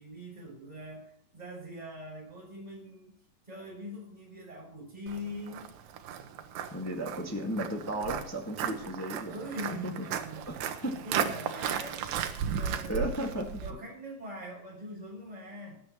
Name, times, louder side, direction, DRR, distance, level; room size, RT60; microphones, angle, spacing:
voice 1, 0.0-3.2 3.5-5.7 9.3-13.1 13.6-15.8, equal, 10° right, -3 dB, 6.8 m, -43 dB
Walk footsteps, 5.1-13.7, right 8 dB, 75° right, 2.6 m, -35 dB
voice 2, 6.7-9.3 9.8-9.9 10.5-10.6 10.8-11.0 12.9-13.5, right 1 dB, 10° left, 0 dB, 0.7 m, -34 dB
18.5 x 10.5 x 3.1 m, 0.66 s
omnidirectional pair, 3.9 m